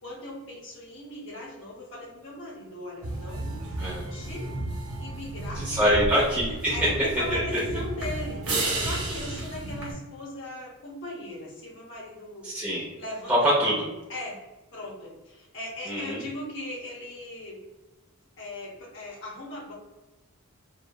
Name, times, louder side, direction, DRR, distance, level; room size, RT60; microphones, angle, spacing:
voice 1, 0.0-4.5 5.0-6.1 6.7-8.4 8.8-12.5 13.0-13.5 14.1-14.4 14.7-17.6 18.4-19.7, left 1 dB, 55° left, -3 dB, 0.8 m, -38 dB
sound 1, 3.0-9.9, right 2 dB, 70° right, 0.9 m, -32 dB
voice 2, 5.5-6.7 7.3-7.4 12.4-12.9 13.3-13.9 15.9-16.2, equal, 5° right, -9 dB, 0.7 m, -24 dB
3.1 x 2.2 x 2.2 m, 1.0 s
head